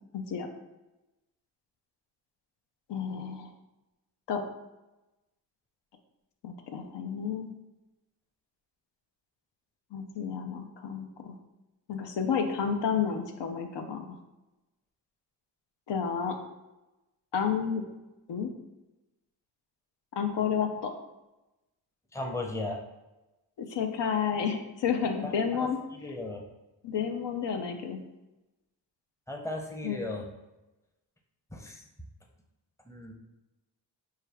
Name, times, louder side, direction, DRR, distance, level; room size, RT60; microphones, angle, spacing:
voice 1, 0.1-0.5 2.9-3.5 4.3-4.4 6.4-7.5 9.9-11.3 11.9-14.2 15.9-16.4 17.3-17.8 18.3-18.5 20.1-20.9 23.6-25.8 26.8-28.0 29.8-30.0, left 7 dB, 70° left, 5 dB, 0.6 m, -31 dB
voice 2, 22.1-22.8 25.2-25.3 25.6-26.4 29.3-30.3 31.5-31.8 32.9-33.1, left 2 dB, 5° left, 2 dB, 0.6 m, -36 dB
4.7 x 2.3 x 3.3 m, 1.0 s
cardioid pair, 50°, 43 cm